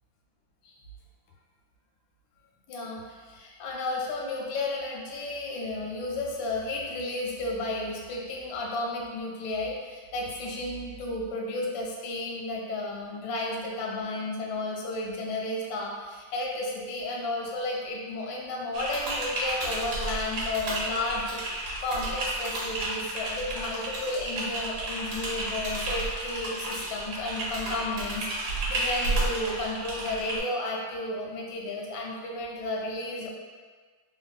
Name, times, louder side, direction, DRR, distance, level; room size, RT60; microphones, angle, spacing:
voice 1, 2.7-33.3, left 2 dB, 85° left, -1 dB, 1.3 m, -33 dB
Typing, 18.7-30.4, right 2 dB, 80° right, 1.4 m, -32 dB
3.4 x 2.2 x 2.3 m, 1.5 s
omnidirectional pair, 2.0 m